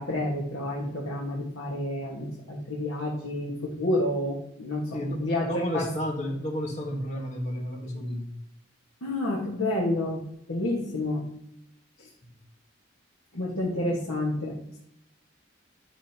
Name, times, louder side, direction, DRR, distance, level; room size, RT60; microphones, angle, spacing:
voice 1, 0.0-5.5 5.7-5.9 9.0-11.3 12.0-12.1 13.3-14.8, left 1 dB, 75° left, -4 dB, 1.6 m, -29 dB
voice 2, 4.9-8.3 12.2-12.3, equal, 35° left, 1 dB, 1.4 m, -32 dB
10.5 x 6.2 x 2.9 m, 0.77 s
head